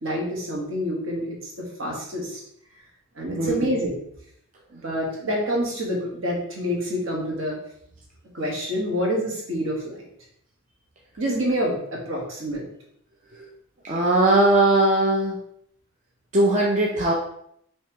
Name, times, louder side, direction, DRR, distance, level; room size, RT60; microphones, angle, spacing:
voice 1, 0.0-2.4 3.1-4.0 4.7-7.6 8.3-10.0 11.2-12.6, equal, 65° right, -2 dB, 1.3 m, -27 dB
voice 2, 13.8-15.4 16.3-17.1, right 2 dB, 35° right, -2 dB, 0.5 m, -19 dB
5.3 x 3.2 x 2.9 m, 0.71 s
head